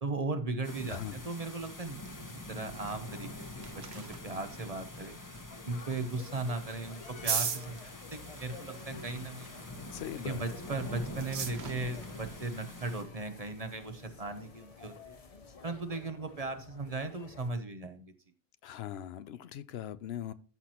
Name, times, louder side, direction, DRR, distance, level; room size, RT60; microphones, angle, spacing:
voice 1, 0.0-3.7 3.9-5.2 5.7-9.6 10.2-15.2 15.6-18.1, right 3 dB, 40° right, 1.0 m, -37 dB
sound 1, 0.6-13.0, left 1 dB, 20° left, 1.0 m, -45 dB
voice 2, 0.9-1.2 9.9-10.4 18.6-20.3, left 10 dB, 80° left, 0.8 m, -40 dB
sound 2, 3.2-15.7, right 6 dB, 80° right, 1.2 m, -43 dB
sound 3, 5.5-17.5, left 5 dB, 40° left, 0.7 m, -52 dB
13.5 x 5.9 x 3.0 m
omnidirectional pair, 1.1 m